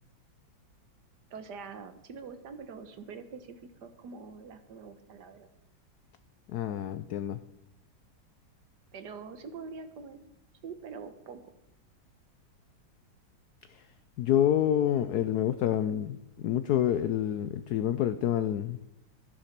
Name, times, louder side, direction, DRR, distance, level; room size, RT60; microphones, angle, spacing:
voice 1, 1.3-5.5 8.9-10.2 10.6-11.4, right 5 dB, 60° right, 9 dB, 1.6 m, -44 dB
voice 2, 6.5-7.4 13.7-13.8 14.2-18.8, left 10 dB, 75° left, 12 dB, 0.9 m, -28 dB
13.0 x 10.0 x 5.9 m, 0.83 s
omnidirectional pair, 2.2 m